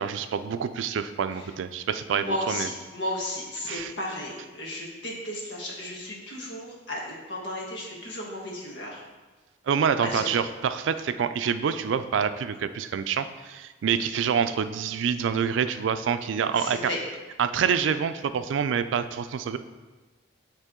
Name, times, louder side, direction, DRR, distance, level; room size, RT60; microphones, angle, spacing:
voice 1, 0.0-2.7 3.7-3.9 9.7-16.8 17.4-19.6, right 7 dB, 90° right, 11 dB, 0.3 m, -27 dB
voice 2, 2.1-9.0 10.0-10.3 16.5-17.0, left 1 dB, 70° left, -3 dB, 1.4 m, -34 dB
8.2 x 3.4 x 3.7 m, 1.2 s
head